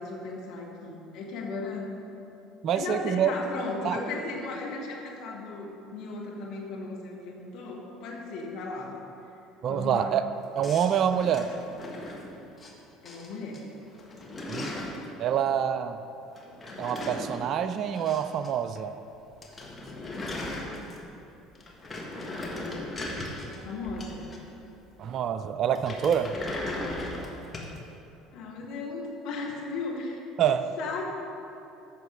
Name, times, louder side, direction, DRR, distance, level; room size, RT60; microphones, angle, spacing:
voice 1, 0.0-1.9 2.7-9.0 9.7-10.1 13.0-13.6 22.2-22.9 23.5-24.3 28.3-31.0, left 3 dB, 55° left, -2 dB, 1.7 m, -36 dB
voice 2, 2.6-3.3 3.8-4.0 9.6-10.2 10.6-11.5 14.5-14.7 15.2-16.0 16.8-19.0 25.0-26.4 30.4-30.7, right 9 dB, 45° right, 11 dB, 0.4 m, -26 dB
sound 1, 10.6-12.7 13.1-13.6 13.9-15.1 16.3-18.5 18.8-18.9 19.1-19.2 19.4-21.2 21.6-24.7 25.7-27.8, left 1 dB, 20° left, 1.6 m, -37 dB
14.0 x 6.0 x 3.8 m, 2.8 s
figure-of-eight pair, 60°, 0 cm